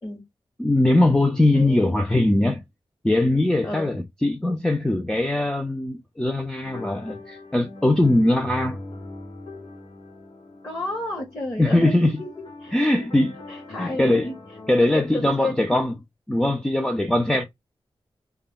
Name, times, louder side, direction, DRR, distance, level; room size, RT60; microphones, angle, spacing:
voice 1, 0.6-2.6 3.0-8.8 11.6-12.2 12.7-13.3 13.8-14.3 14.7-15.9 16.3-17.4, left 1 dB, 5° left, 0.3 m, -21 dB
voice 2, 1.5-1.9 3.6-3.9 10.6-13.1 13.5-14.3 14.7-15.6, left 2 dB, 30° left, 0.9 m, -32 dB
sound 1, 6.6-15.3, left 2 dB, 60° left, 1.1 m, -41 dB
2.3 x 2.1 x 3.5 m
wide cardioid pair, 100°, 10 cm